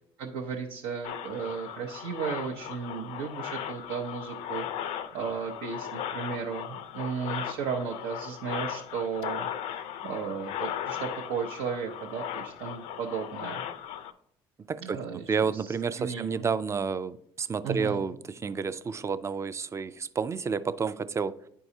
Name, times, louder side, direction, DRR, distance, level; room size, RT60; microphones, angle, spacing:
voice 1, 0.2-9.5 10.0-13.6 14.8-16.5 17.6-18.0, right 6 dB, 85° right, 0.7 m, -35 dB
sound 1, 1.0-14.1, left 10 dB, 75° left, 0.5 m, -37 dB
voice 2, 15.3-18.2 18.4-21.4, right 5 dB, 25° right, 0.4 m, -30 dB
9.9 x 4.6 x 2.7 m
supercardioid pair, 75°, 11 cm